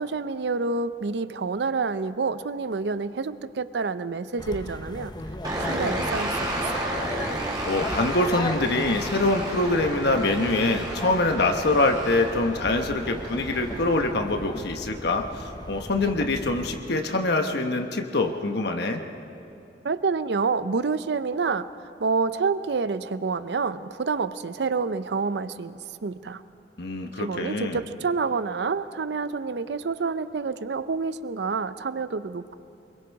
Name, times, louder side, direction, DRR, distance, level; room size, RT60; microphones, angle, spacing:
voice 1, 0.0-5.1 5.7-6.4 6.7-6.9 15.9-16.2 19.8-26.4 27.2-32.5, right 4 dB, 70° right, 14 dB, 0.6 m, -28 dB
sound 1, 4.4-16.8, left 1 dB, 25° left, 0.9 m, -37 dB
sound 2, 5.4-14.1, right 1 dB, 25° right, 3.9 m, -32 dB
voice 2, 7.6-19.0 26.8-27.8, left 2 dB, 65° left, 4 dB, 1.2 m, -24 dB
25.0 x 22.0 x 4.7 m, 2.7 s
head